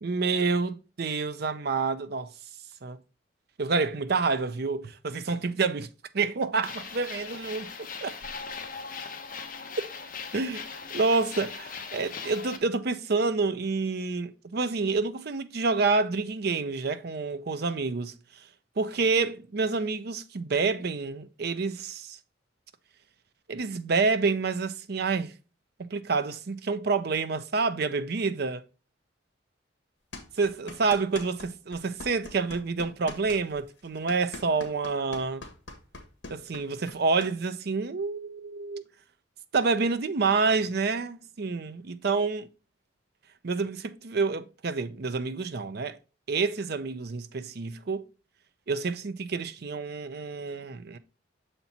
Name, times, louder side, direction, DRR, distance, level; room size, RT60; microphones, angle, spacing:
voice 1, 0.0-2.3 2.8-3.0 3.6-5.9 6.1-8.1 10.3-10.6 10.9-18.1 18.8-22.2 23.5-25.3 25.8-28.6 30.4-35.4 36.3-38.8 39.5-42.5 43.4-46.0 46.3-48.1 48.7-51.0, right 4 dB, 55° right, 0.6 m, -28 dB
sound 1, 6.6-12.6, left 5 dB, 45° left, 0.9 m, -39 dB
sound 2, 30.1-31.5 31.7-37.3, left 2 dB, 70° left, 1.9 m, -42 dB
6.8 x 4.4 x 4.1 m
head